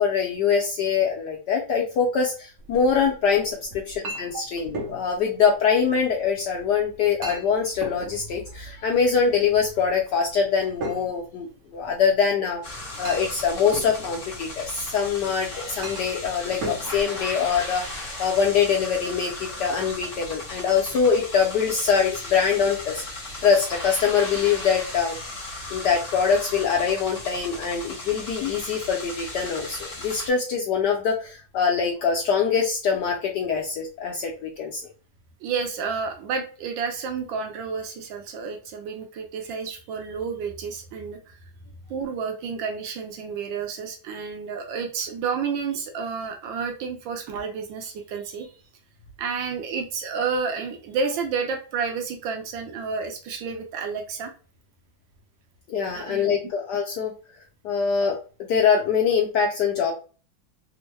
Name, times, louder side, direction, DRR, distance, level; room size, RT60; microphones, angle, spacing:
voice 1, 0.0-11.5 11.7-23.0 23.4-25.2 25.7-34.8 55.7-57.1 57.6-58.2 58.5-59.9, left 6 dB, 75° left, 0 dB, 1.0 m, -23 dB
Chink clink, 2.6-18.1, right 1 dB, 60° right, 1.0 m, -40 dB
sound 1, 12.6-30.3, left 2 dB, 35° left, 1.0 m, -36 dB
voice 2, 35.4-41.4 41.9-48.5 49.2-54.3 55.9-56.4, right 5 dB, 75° right, 4 dB, 1.3 m, -30 dB
3.5 x 2.1 x 3.1 m, 0.37 s
omnidirectional pair, 2.3 m